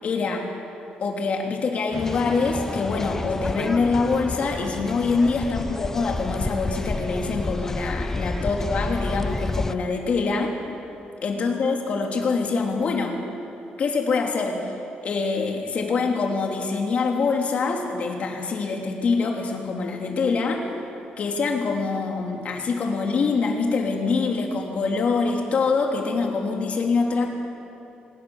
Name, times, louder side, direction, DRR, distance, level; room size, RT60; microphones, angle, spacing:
voice 1, 0.0-0.5 1.0-10.6 11.2-13.2 13.8-14.7 15.0-20.7 21.2-27.3, left 4 dB, 50° left, 2 dB, 3.3 m, -25 dB
sound 1, 1.9-9.8, left 2 dB, 15° left, 0.6 m, -30 dB
26.0 x 18.5 x 7.3 m, 2.8 s
cardioid pair, 135°, 3 cm